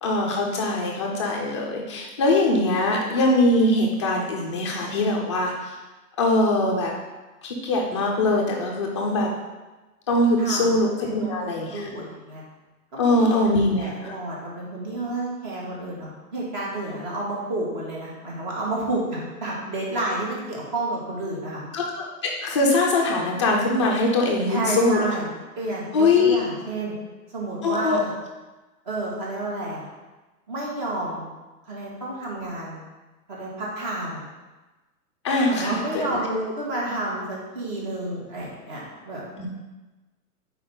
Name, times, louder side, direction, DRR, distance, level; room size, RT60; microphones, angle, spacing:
voice 1, 0.0-5.8 6.2-6.9 7.4-9.3 10.1-11.9 13.0-14.1 21.7-25.1 25.9-26.4 27.6-28.0 35.2-36.2 39.4-39.5, left 2 dB, 20° left, -1 dB, 0.5 m, -22 dB
voice 2, 10.4-12.4 12.9-13.3 13.7-21.6 24.5-25.3 25.6-27.0 27.3-28.1 28.8-29.8 30.5-31.2 31.6-32.8 33.3-34.2 35.5-39.2, right 2 dB, 30° right, -4 dB, 1.7 m, -30 dB
4.6 x 3.9 x 5.4 m, 1.2 s
hypercardioid pair, 155°, 46 cm